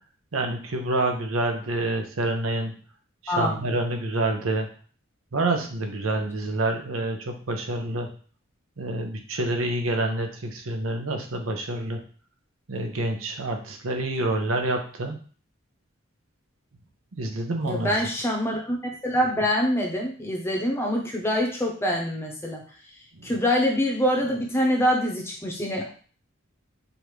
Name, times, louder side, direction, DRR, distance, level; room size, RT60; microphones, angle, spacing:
voice 1, 0.3-2.7 3.2-4.7 5.3-8.1 8.8-12.0 12.7-15.2 17.2-18.0 23.1-23.3, right 2 dB, 85° right, 5 dB, 0.7 m, -27 dB
voice 2, 3.3-3.6 17.7-18.8 19.0-22.6 23.2-25.9, equal, 10° left, 0 dB, 0.7 m, -25 dB
5.0 x 2.5 x 3.1 m, 0.41 s
head